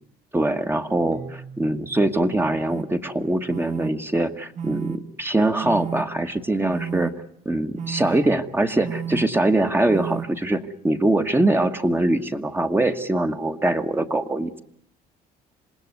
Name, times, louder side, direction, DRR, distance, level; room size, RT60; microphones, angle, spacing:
voice 1, 0.3-7.1 7.4-14.6, right 2 dB, 15° right, 6 dB, 1.5 m, -23 dB
Keyboard (musical), 1.1-4.8, right 5 dB, 80° right, 3.5 m, -46 dB
sound 1, 2.7-2.8 3.5-3.9 4.6-5.0 5.6-6.0 6.7-7.1 7.8-8.2 8.8-9.2 9.9-10.2, right 8 dB, 45° right, 1.5 m, -31 dB
27.0 x 19.0 x 9.5 m, 0.70 s
cardioid pair, 110°, 17 cm